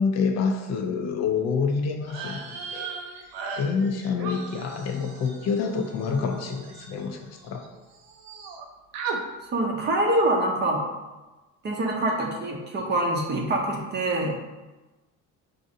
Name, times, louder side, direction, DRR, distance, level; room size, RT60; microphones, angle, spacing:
voice 1, 0.0-2.9 3.6-7.6, left 5 dB, 50° left, 4 dB, 0.4 m, -27 dB
sound 1, 2.0-7.7 7.9-8.6 8.9-9.2, right 5 dB, 80° right, 0.6 m, -37 dB
voice 2, 9.5-10.8 11.6-14.3, right 1 dB, 30° right, 0 dB, 0.6 m, -25 dB
5.1 x 2.6 x 2.6 m, 1.1 s
cardioid pair, 150°, 35 cm